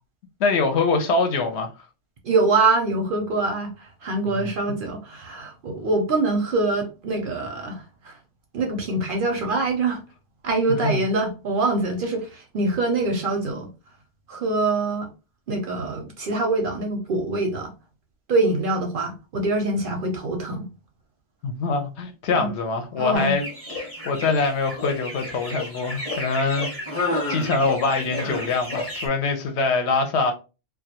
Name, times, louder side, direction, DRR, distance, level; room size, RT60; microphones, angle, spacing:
voice 1, 0.4-1.7 4.4-4.5 10.7-11.0 21.4-23.5 23.7-26.7 27.3-30.3, left 3 dB, 70° left, 0.8 m, -24 dB
voice 2, 2.2-8.2 8.5-10.0 10.4-13.7 14.3-15.1 15.5-17.7 18.3-20.7 22.4-22.5 22.9-23.4, right 2 dB, 60° right, 0.6 m, -24 dB
sound 1, 23.1-29.1, left 2 dB, 15° left, 0.6 m, -31 dB
2.2 x 2.2 x 2.7 m
omnidirectional pair, 1.2 m